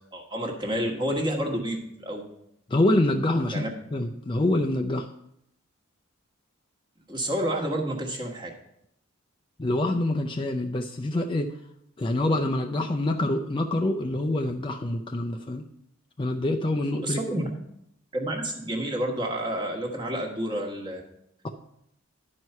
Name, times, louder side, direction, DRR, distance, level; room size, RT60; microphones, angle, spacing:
voice 1, 0.1-2.3 3.5-3.7 7.1-8.5 17.0-17.5 18.1-21.0, right 1 dB, 20° right, 0 dB, 1.3 m, -29 dB
voice 2, 2.7-3.6 3.9-5.1 9.6-11.5 12.0-15.6 16.2-17.5 21.4-21.5, left 1 dB, 25° left, 3 dB, 0.4 m, -26 dB
10.5 x 4.7 x 5.5 m, 0.76 s
head